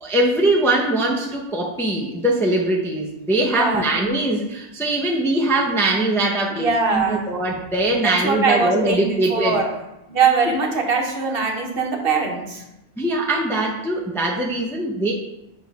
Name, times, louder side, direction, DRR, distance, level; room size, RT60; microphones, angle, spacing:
voice 1, 0.0-9.6 10.4-10.6 13.0-15.1, right 1 dB, 5° left, -1 dB, 0.6 m, -21 dB
voice 2, 3.5-3.9 6.5-7.3 8.0-9.7 10.1-12.6, right 5 dB, 55° right, 2 dB, 1.1 m, -22 dB
7.1 x 3.2 x 5.3 m, 0.90 s
omnidirectional pair, 1.2 m